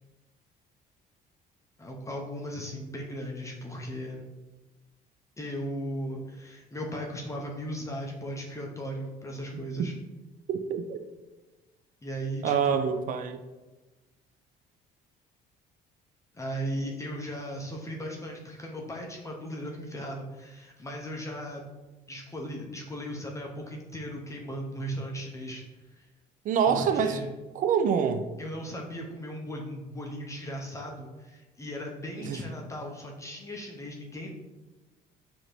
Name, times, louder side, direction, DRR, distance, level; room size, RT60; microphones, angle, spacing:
voice 1, 1.8-4.3 5.4-9.9 12.0-12.9 16.3-21.7 22.1-25.6 25.9-26.1 26.7-27.3 28.4-34.3, equal, 20° left, 0 dB, 0.6 m, -37 dB
voice 2, 10.5-11.0 12.4-13.4 26.4-27.2 27.5-28.3 32.2-32.4, right 7 dB, 50° right, 8 dB, 0.4 m, -26 dB
4.8 x 2.6 x 3.0 m, 1.1 s
cardioid pair, 110°, 17 cm